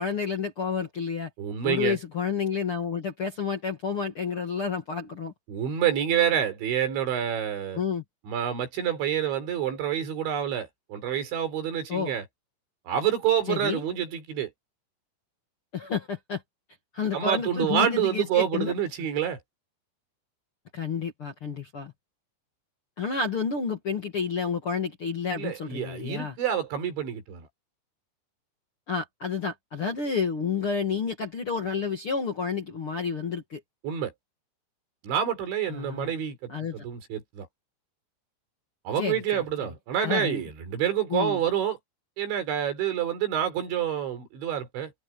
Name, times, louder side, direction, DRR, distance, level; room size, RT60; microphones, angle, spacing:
voice 1, 0.0-1.3 1.6-5.3 7.7-8.0 11.9-12.1 13.5-13.8 15.7-16.4 16.9-18.7 20.7-21.9 23.0-26.4 28.9-33.6 35.7-36.1 36.5-36.8 39.0-39.7 40.0-40.4 41.1-41.4, left 5 dB, 45° left, 1.9 m, -30 dB
voice 2, 1.4-2.0 5.5-7.8 8.2-12.2 12.9-14.5 17.1-19.4 25.4-27.5 33.8-34.1 35.0-37.5 38.9-41.8 42.2-44.9, right 9 dB, 75° right, 6.4 m, -28 dB
omnidirectional pair, 5.3 m